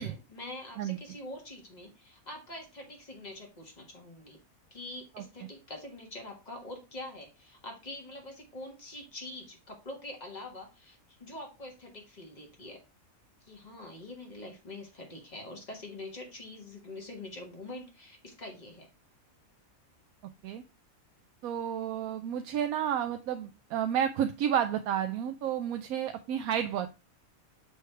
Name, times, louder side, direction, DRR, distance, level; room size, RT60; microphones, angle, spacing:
voice 1, 0.0-4.4 4.7-12.8 13.4-18.9, left 2 dB, 30° left, 2 dB, 1.6 m, -45 dB
voice 2, 21.4-26.9, right 9 dB, 80° right, 7 dB, 1.0 m, -31 dB
6.9 x 3.2 x 4.4 m, 0.28 s
omnidirectional pair, 1.5 m